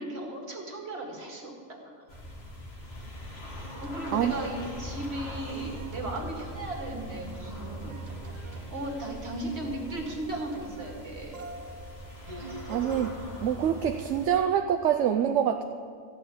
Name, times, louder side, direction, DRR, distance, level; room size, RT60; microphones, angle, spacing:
voice 1, 0.0-2.2 3.8-8.0 8.3-11.4, right 1 dB, 55° right, 0 dB, 2.3 m, -36 dB
sound 1, 2.1-14.3, equal, 50° left, 2.2 m, -41 dB
sound 2, 3.6-4.9 5.3-7.0 7.4-9.1 9.4-11.1 11.3-13.1, right 3 dB, 35° right, 0.9 m, -46 dB
voice 2, 12.7-13.1 13.4-15.6, right 9 dB, 75° right, 6 dB, 0.9 m, -25 dB
14.0 x 6.5 x 9.2 m, 2.1 s
omnidirectional pair, 1.3 m